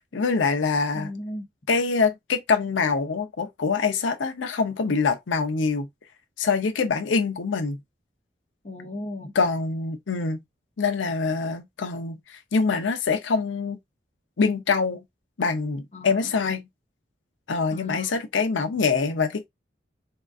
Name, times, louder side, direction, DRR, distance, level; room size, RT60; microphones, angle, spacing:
voice 1, 0.1-1.1 1.7-5.9 6.4-7.8 9.3-10.4 10.8-13.8 14.4-15.0 15.4-16.6 17.5-19.5, left 4 dB, 85° left, 0.6 m, -24 dB
voice 2, 0.9-1.5 8.6-9.3 15.9-16.5 17.7-18.1, left 1 dB, 35° left, 0.6 m, -36 dB
3.7 x 2.4 x 2.4 m
head